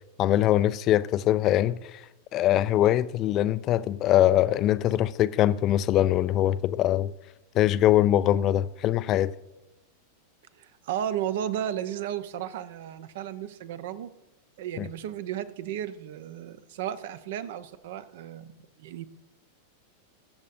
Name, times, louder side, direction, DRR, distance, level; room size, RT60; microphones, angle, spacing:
voice 1, 0.2-1.8 2.3-7.1 7.5-9.3 14.8-14.9, left 13 dB, 35° left, 0.4 m, -22 dB
voice 2, 10.6-14.1 14.6-18.5 18.8-19.1, right 10 dB, 55° right, 0.7 m, -34 dB
21.5 x 7.4 x 2.6 m
figure-of-eight pair, 90°, 0 cm